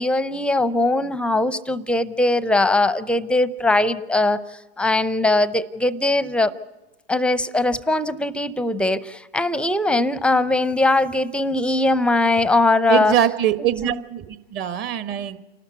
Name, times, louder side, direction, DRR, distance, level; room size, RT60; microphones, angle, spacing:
voice 1, 0.0-4.4 4.8-6.5 7.1-13.1 13.8-14.0, left 2 dB, 5° left, 16 dB, 0.6 m, -20 dB
voice 2, 12.9-15.4, right 10 dB, 35° right, 11 dB, 1.4 m, -23 dB
29.0 x 12.5 x 8.4 m, 1.1 s
hypercardioid pair, 115°, 31 cm